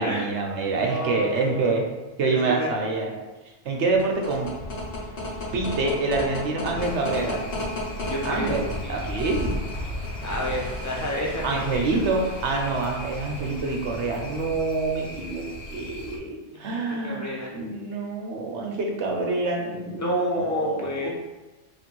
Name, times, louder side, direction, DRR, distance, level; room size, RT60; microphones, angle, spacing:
voice 1, 0.0-1.8 2.2-3.1 3.6-4.5 5.5-7.4 8.2-9.5 11.4-21.1, right 3 dB, 70° right, 1 dB, 1.0 m, -26 dB
voice 2, 0.7-1.8 2.2-2.7 8.1-9.3 10.2-11.9 16.7-17.5 20.0-21.1, equal, 25° left, -3 dB, 0.4 m, -30 dB
sound 1, 3.8-14.6, left 1 dB, 55° left, 1.0 m, -34 dB
sound 2, 6.8-16.2, left 1 dB, 90° left, 1.1 m, -39 dB
3.4 x 2.5 x 4.4 m, 1.1 s
omnidirectional pair, 1.3 m